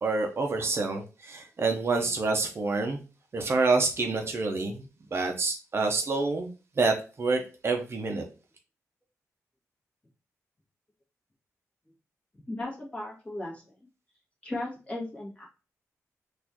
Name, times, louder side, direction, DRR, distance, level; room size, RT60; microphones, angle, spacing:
voice 1, 0.0-3.0 3.3-8.2, right 3 dB, 45° right, 3 dB, 0.6 m, -28 dB
voice 2, 12.5-13.6 14.4-15.5, left 1 dB, 20° left, -3 dB, 1.5 m, -36 dB
4.1 x 2.5 x 2.8 m, 0.33 s
cardioid pair, 100°, 6 cm